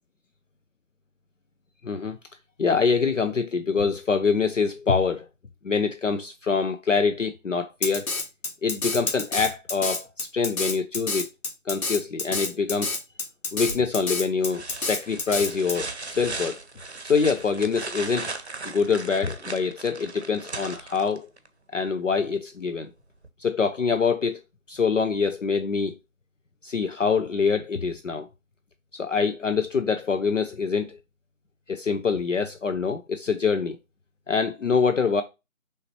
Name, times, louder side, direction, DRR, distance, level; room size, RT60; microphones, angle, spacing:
voice 1, 1.8-2.2 2.6-5.3 5.6-8.1 8.6-11.3 11.7-13.0 13.5-16.6 17.0-18.3 18.6-21.3 21.7-22.9 23.4-24.4 24.7-26.0 26.6-28.3 28.9-31.0 31.7-33.8 34.3-35.2, left 5 dB, 60° left, 0.5 m, -25 dB
Drum kit, 7.8-15.8, left 3 dB, 80° left, 1.0 m, -29 dB
sound 1, 13.7-14.0 14.5-21.5 23.2-23.3, right 3 dB, 50° right, 0.7 m, -37 dB
5.4 x 3.2 x 3.0 m
figure-of-eight pair, 165°, 43 cm